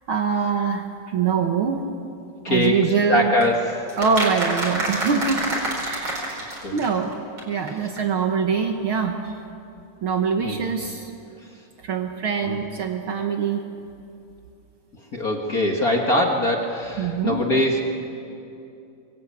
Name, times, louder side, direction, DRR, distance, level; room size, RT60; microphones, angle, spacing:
voice 1, 0.1-1.9 2.5-3.3 4.0-5.5 5.8-7.1 7.5-9.4 10.0-11.1 11.8-13.6 17.0-17.4, right 6 dB, 85° right, 4 dB, 1.1 m, -24 dB
voice 2, 2.4-2.8 3.1-3.9 6.6-6.8 10.4-10.6 12.4-12.6 15.1-17.8, left 1 dB, 45° left, 1 dB, 1.2 m, -22 dB
sound 1, 3.4-7.1 7.4-7.5 7.7-7.8 8.0-8.1, right 1 dB, 30° right, 5.2 m, -28 dB
25.5 x 21.5 x 8.6 m, 2.7 s
omnidirectional pair, 4.2 m